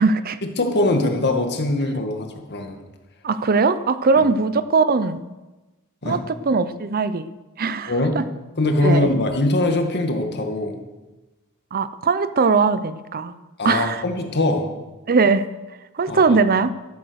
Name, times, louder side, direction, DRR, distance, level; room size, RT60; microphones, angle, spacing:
voice 1, 0.0-0.4 3.2-5.3 6.0-7.3 7.6-8.2 8.8-9.1 11.7-13.3 13.6-14.0 15.1-15.5 15.9-16.7, right 4 dB, 40° right, 13 dB, 0.6 m, -20 dB
voice 2, 0.6-2.8 6.0-6.2 7.9-8.2 8.6-10.8 13.6-14.7 16.1-16.4, left 2 dB, 50° left, 4 dB, 2.0 m, -22 dB
13.0 x 11.5 x 6.4 m, 1.1 s
head